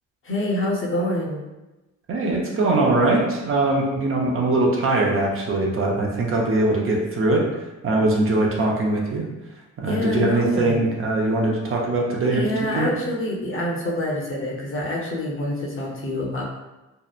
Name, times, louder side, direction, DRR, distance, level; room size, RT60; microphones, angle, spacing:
voice 1, 0.2-1.4 9.8-10.9 12.3-16.4, left 1 dB, 45° left, -3 dB, 0.8 m, -26 dB
voice 2, 2.1-7.5 7.8-9.2 9.8-12.9, right 2 dB, 45° right, -1 dB, 0.5 m, -21 dB
2.8 x 2.0 x 2.4 m, 1.0 s
cardioid pair, 90°, 30 cm